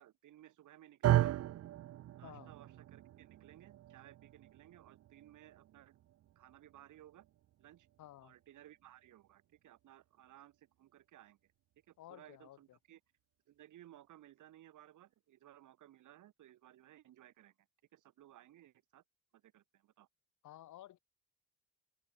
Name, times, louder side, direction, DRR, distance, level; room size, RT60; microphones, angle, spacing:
voice 1, 0.0-1.3 2.1-6.0 6.4-7.3 7.6-7.9 8.2-11.5 11.9-13.0 13.5-17.7 17.9-19.0 19.3-20.1, right 13 dB, 80° right, 7.2 m, -60 dB
sound 1, 1.0-9.3, right 13 dB, 55° right, 0.5 m, -38 dB
voice 2, 2.2-2.5 8.0-8.3 12.0-12.8 20.4-21.0, left 13 dB, 80° left, 3.0 m, -54 dB
open air
cardioid pair, 90°, 30 cm